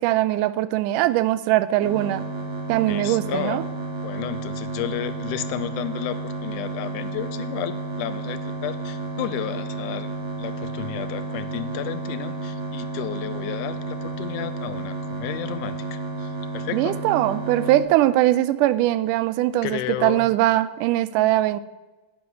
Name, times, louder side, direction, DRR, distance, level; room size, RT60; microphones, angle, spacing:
voice 1, 0.0-2.2 2.7-3.6 16.7-21.6, right 14 dB, 80° right, 15 dB, 2.1 m, -21 dB
sound 1, 1.8-17.8, right 3 dB, 65° right, 4.1 m, -31 dB
voice 2, 2.9-3.6 4.0-10.1 10.4-17.0 19.6-20.3, left 12 dB, 80° left, 13 dB, 2.1 m, -32 dB
11.5 x 7.7 x 9.6 m, 1.2 s
omnidirectional pair, 3.8 m